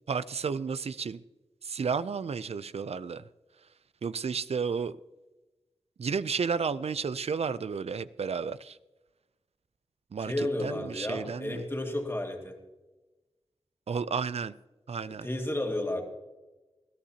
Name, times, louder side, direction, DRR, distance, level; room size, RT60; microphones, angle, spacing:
voice 1, 0.1-1.2 1.6-3.2 4.0-5.0 6.0-8.8 10.1-11.6 13.9-14.5 14.9-15.3, right 5 dB, 70° right, 0.4 m, -32 dB
voice 2, 10.2-12.6 15.1-16.0, left 1 dB, 20° left, 2.2 m, -32 dB
20.0 x 14.5 x 2.8 m
wide cardioid pair, 95°, 11 cm